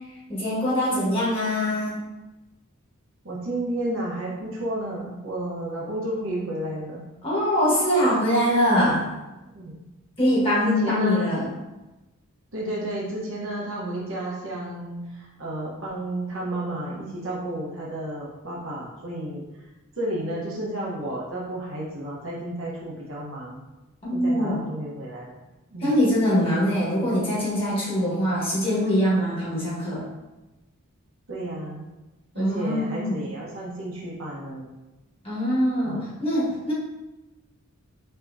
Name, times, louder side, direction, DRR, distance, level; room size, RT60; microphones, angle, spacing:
voice 1, 0.3-2.0 7.2-9.0 10.2-11.5 24.0-24.6 25.8-30.1 32.3-33.2 35.2-36.7, equal, 25° left, -7 dB, 1.3 m, -23 dB
voice 2, 3.2-7.0 9.5-9.8 10.6-11.3 12.5-19.4 20.0-23.6 24.1-25.4 25.7-26.0 31.3-31.9 32.3-34.7 35.8-36.1, right 1 dB, 60° right, -4 dB, 1.0 m, -32 dB
5.6 x 2.9 x 2.6 m, 1.1 s
head